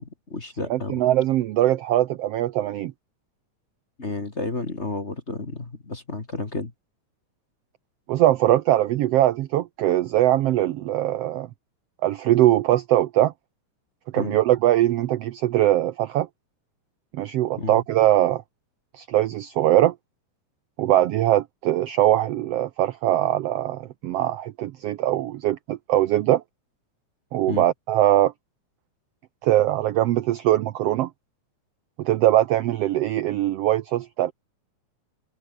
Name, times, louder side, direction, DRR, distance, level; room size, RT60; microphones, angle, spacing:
voice 1, 0.0-1.0 4.0-6.7 14.2-14.4 17.6-17.8 27.5-27.7, left 3 dB, 25° left, 2.2 m, -31 dB
voice 2, 0.7-2.9 8.1-11.5 12.0-13.3 14.1-16.3 17.1-18.4 18.9-19.9 20.8-26.4 27.3-28.3 29.4-31.1 32.0-34.3, right 13 dB, 70° right, 1.5 m, -21 dB
omnidirectional pair, 3.5 m